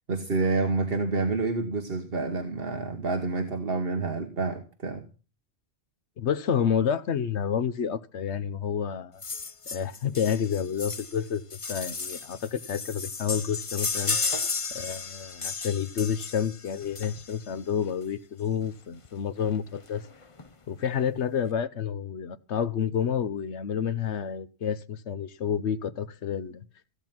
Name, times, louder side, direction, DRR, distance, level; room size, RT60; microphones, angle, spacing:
voice 1, 0.1-5.0, right 3 dB, 60° right, 1.5 m, -28 dB
voice 2, 6.2-9.2 9.7-14.2 14.7-20.1 20.7-26.6, left 8 dB, 85° left, 1.1 m, -29 dB
sound 1, 9.2-17.5 18.6-18.7 19.0-19.1 19.4-19.5 19.9-20.5 21.0-21.1, left 4 dB, 30° left, 0.9 m, -34 dB
17.0 x 9.0 x 6.0 m
omnidirectional pair, 1.1 m